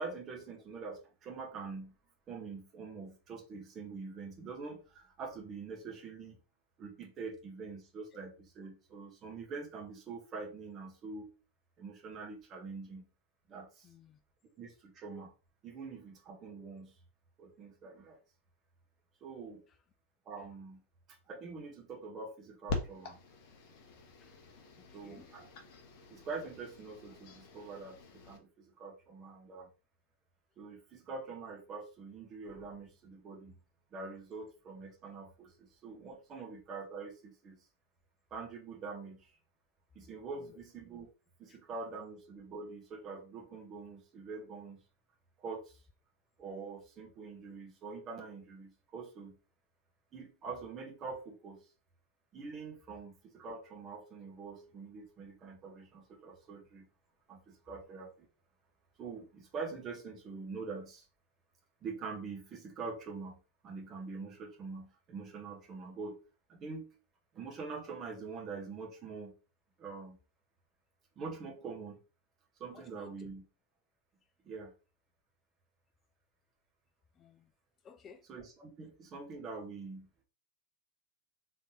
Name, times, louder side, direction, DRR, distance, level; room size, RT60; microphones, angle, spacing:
voice 1, 0.0-1.9 2.3-6.4 6.8-11.3 11.8-13.0 13.5-13.9 14.6-15.3 15.6-16.9 17.4-18.2 19.2-19.6 20.2-20.8 21.3-23.2 24.9-25.5 26.1-29.7 30.6-33.6 33.9-37.6 38.3-39.3 39.9-41.1 41.4-44.8 45.4-45.8 46.4-49.3 50.1-51.6 52.3-56.8 57.3-58.3 59.0-61.0 61.8-66.2 66.5-66.9 67.3-69.3 69.8-70.2 71.2-72.0 72.6-73.4 74.4-74.7 78.3-80.1, right 4 dB, 30° right, 1.3 m, -45 dB
voice 2, 13.8-14.2 24.2-24.4 24.8-25.3 40.5-40.6 41.5-41.6 72.7-73.3 77.2-77.5 77.8-78.2, left 6 dB, 25° left, 0.3 m, -56 dB
sound 1, 22.7-28.4, left 3 dB, 45° left, 0.9 m, -44 dB
3.9 x 3.5 x 2.9 m
figure-of-eight pair, 90°, 0 cm